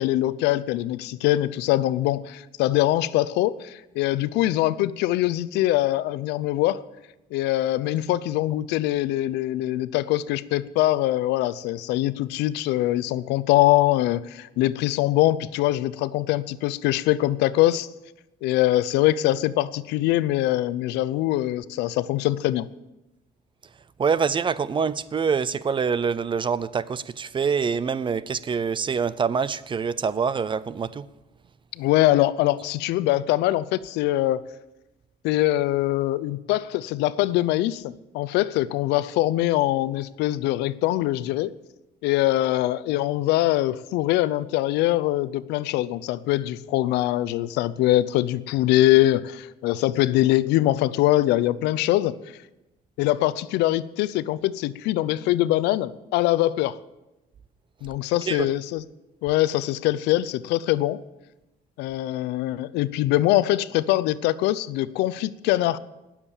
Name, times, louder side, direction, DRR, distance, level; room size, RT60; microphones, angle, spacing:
voice 1, 0.0-6.8 7.3-17.9 18.4-22.7 31.8-34.4 35.2-41.5 42.0-52.2 53.0-56.8 57.8-58.8 59.2-61.0 61.8-65.8, left 15 dB, 90° left, 18 dB, 0.6 m, -23 dB
voice 2, 24.0-31.0 58.3-58.5, right 6 dB, 30° right, 17 dB, 0.6 m, -25 dB
19.5 x 7.4 x 7.2 m, 0.99 s
cardioid pair, 110°, 17 cm